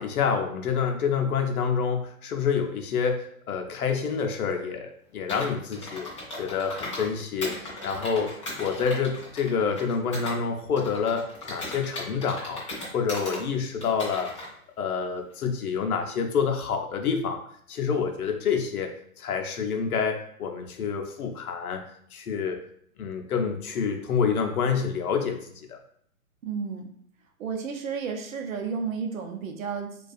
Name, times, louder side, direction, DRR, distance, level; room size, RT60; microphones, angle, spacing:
voice 1, 0.0-6.1 6.4-12.6 12.9-14.3 14.8-17.4 17.7-18.9 19.2-21.8 22.1-22.6 23.0-25.8, left 6 dB, 80° left, 3 dB, 0.6 m, -27 dB
Computer keyboard, 5.3-7.1 7.4-10.4 10.8-13.4 13.8-14.5, left 1 dB, 25° left, 0.5 m, -37 dB
voice 2, 26.4-26.9 27.4-30.0, right 5 dB, 65° right, 3 dB, 0.6 m, -32 dB
2.3 x 2.3 x 2.5 m, 0.64 s
hypercardioid pair, 155°, 43 cm